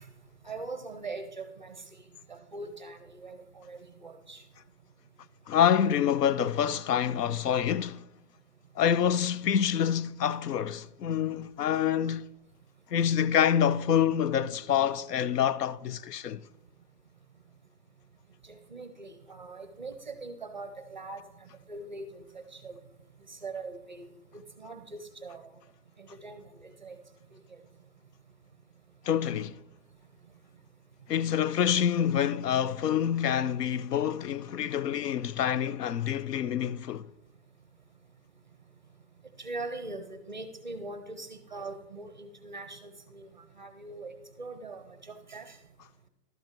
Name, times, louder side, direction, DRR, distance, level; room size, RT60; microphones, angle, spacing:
voice 1, 0.4-1.8 2.3-4.4 18.5-22.8 23.3-24.1 24.3-25.4 26.0-27.0 33.4-33.5 39.4-43.3 43.6-44.1 44.4-45.6, right 3 dB, 30° right, 0.5 m, -42 dB
voice 2, 5.5-8.1 8.8-12.3 12.9-16.4 29.0-29.6 31.1-37.1, left 9 dB, 80° left, 0.6 m, -27 dB
12.0 x 7.7 x 4.5 m
hypercardioid pair, 175°, 48 cm